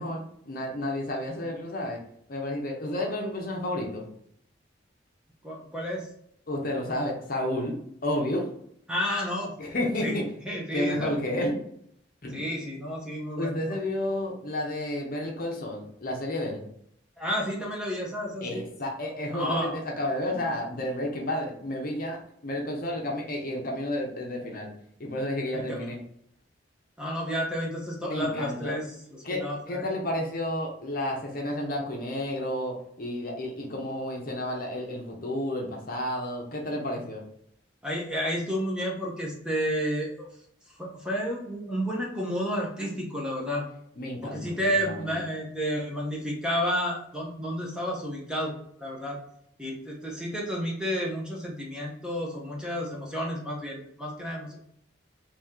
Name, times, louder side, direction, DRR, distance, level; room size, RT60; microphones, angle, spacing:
voice 1, 0.0-2.0 2.3-4.0 6.5-8.5 9.6-10.3 10.7-11.6 12.2-12.4 13.4-16.6 18.4-24.7 25.0-26.0 28.0-28.7 29.2-37.2 44.0-45.2, left 1 dB, 50° left, 0 dB, 0.8 m, -31 dB
voice 2, 5.4-6.1 8.9-9.5 10.0-10.2 10.5-11.3 12.3-13.8 17.2-18.6 19.3-19.8 25.5-25.9 27.0-28.8 29.4-29.8 37.8-40.3 40.8-43.6 44.2-48.5 48.8-49.2 49.6-54.6, equal, 5° right, -3 dB, 0.7 m, -31 dB
2.9 x 2.8 x 3.6 m, 0.69 s
head